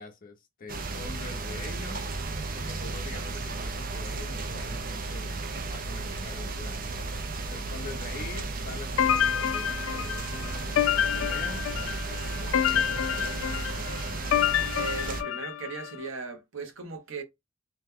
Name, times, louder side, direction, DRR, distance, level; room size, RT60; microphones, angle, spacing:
voice 1, 0.0-2.3 2.5-7.0 7.5-11.7 12.4-13.6, left 3 dB, 45° left, 0.8 m, -44 dB
sound 1, 0.7-15.2, right 3 dB, 45° right, 0.5 m, -34 dB
sound 2, 9.0-15.9, left 10 dB, 85° left, 0.3 m, -28 dB
voice 2, 14.7-17.2, right 4 dB, 85° right, 0.9 m, -37 dB
2.9 x 2.2 x 3.5 m
head